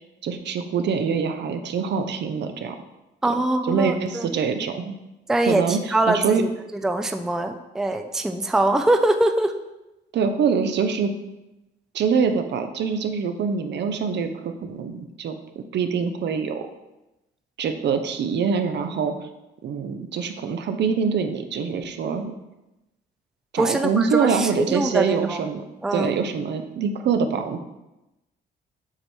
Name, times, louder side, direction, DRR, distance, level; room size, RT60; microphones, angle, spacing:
voice 1, 0.0-2.8 3.6-5.0 5.5-6.4 10.1-11.1 11.9-16.7 17.6-19.3 19.6-22.3 23.5-25.6 25.9-27.6, right 6 dB, 60° right, 7 dB, 0.6 m, -24 dB
voice 2, 3.2-4.3 5.3-6.5 6.8-9.5 23.6-25.4 25.8-26.1, right 1 dB, ahead, 6 dB, 0.4 m, -23 dB
7.2 x 3.4 x 4.4 m, 0.98 s
cardioid pair, 90°, 20 cm